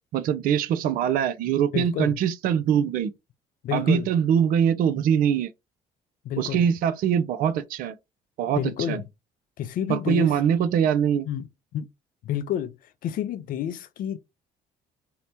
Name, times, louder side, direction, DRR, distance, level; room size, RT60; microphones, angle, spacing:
voice 1, 0.1-3.1 3.7-5.5 6.4-7.9 8.4-8.6 8.9-9.0 9.9-11.3, right 8 dB, 60° right, 0.4 m, -23 dB
voice 2, 1.7-2.2 3.6-4.1 6.2-6.6 8.5-9.0 9.6-10.3 11.3-11.5 11.7-11.9 12.2-12.7 13.0-14.2, left 10 dB, 55° left, 0.4 m, -29 dB
2.8 x 2.0 x 2.7 m
hypercardioid pair, 55°, 17 cm